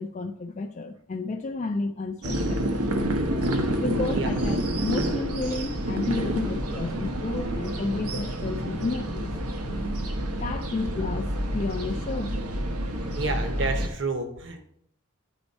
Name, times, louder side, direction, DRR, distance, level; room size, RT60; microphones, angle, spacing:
voice 1, 0.0-2.6 3.8-9.3 10.3-12.5, left 3 dB, 30° left, 4 dB, 0.3 m, -31 dB
sound 1, 2.2-13.9, right 1 dB, 90° right, 1.0 m, -28 dB
voice 2, 13.1-14.6, right 3 dB, 55° right, 6 dB, 1.0 m, -30 dB
9.0 x 4.4 x 4.1 m, 0.71 s
head